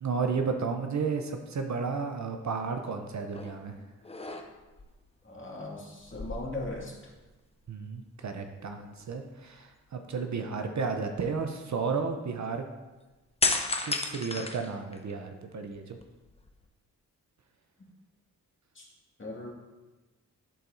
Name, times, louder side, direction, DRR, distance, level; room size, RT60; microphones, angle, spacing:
voice 1, 0.0-3.8 7.7-12.7 13.8-16.0, right 5 dB, 50° right, 5 dB, 0.7 m, -33 dB
sound 1, 3.3-3.6 4.0-4.8 6.0-7.3 7.6-7.8 13.4-15.2 15.7-16.6, left 3 dB, 15° left, 0.8 m, -33 dB
voice 2, 5.2-7.0 18.7-18.9 19.2-19.5, left 2 dB, 35° left, -2 dB, 2.1 m, -38 dB
11.5 x 4.0 x 2.7 m, 1.2 s
supercardioid pair, 40°, 36 cm